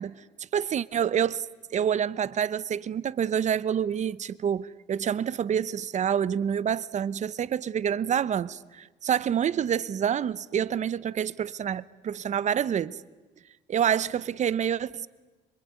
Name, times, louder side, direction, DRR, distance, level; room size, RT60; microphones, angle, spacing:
voice 1, 0.0-13.0 13.7-15.1, right 8 dB, 45° right, 0.9 m, -27 dB
26.0 x 23.0 x 9.6 m
cardioid pair, 110°, 17 cm